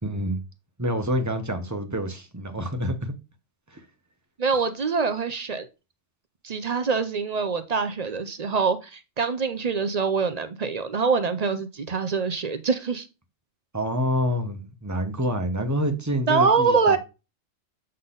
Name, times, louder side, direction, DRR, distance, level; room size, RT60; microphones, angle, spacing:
voice 1, 0.0-0.4 0.8-3.1 3.7-3.8 13.7-17.0, equal, 15° right, 1.0 m, -27 dB
voice 2, 4.4-5.7 6.4-13.1 16.3-17.0, right 5 dB, 45° right, 0.5 m, -24 dB
7.7 x 4.0 x 3.8 m
omnidirectional pair, 1.3 m